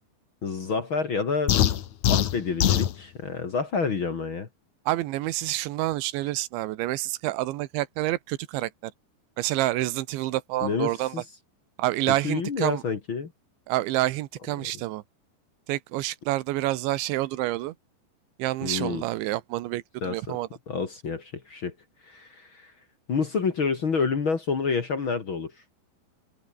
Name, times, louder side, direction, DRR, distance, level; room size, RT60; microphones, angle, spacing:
voice 1, 0.4-1.6 2.1-4.5 10.6-11.2 12.1-13.3 14.6-14.7 18.6-19.0 20.0-20.4 20.7-21.7 22.0-22.7 23.1-25.5, left 5 dB, 45° left, 1.8 m, -28 dB
sound 1, 1.5-2.9, left 11 dB, 65° left, 1.9 m, -22 dB
voice 2, 4.9-8.9 9.4-11.1 11.8-12.8 13.7-15.0 15.7-17.7 18.4-20.5, right 17 dB, 85° right, 3.4 m, -28 dB
omnidirectional pair, 5.2 m